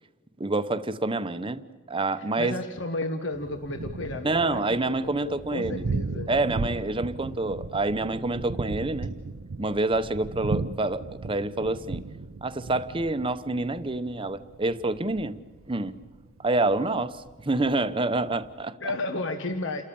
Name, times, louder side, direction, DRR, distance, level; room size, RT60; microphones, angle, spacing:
voice 1, 0.4-1.6 1.9-2.6 4.2-5.9 6.3-9.1 9.6-12.0 12.4-15.4 15.7-16.0 16.4-18.8, right 2 dB, 25° right, 0.8 m, -27 dB
voice 2, 2.2-6.3 18.8-19.8, left 2 dB, 65° left, 1.3 m, -33 dB
Thunder, 3.3-18.6, right 3 dB, 75° right, 0.6 m, -36 dB
29.0 x 14.0 x 8.6 m
head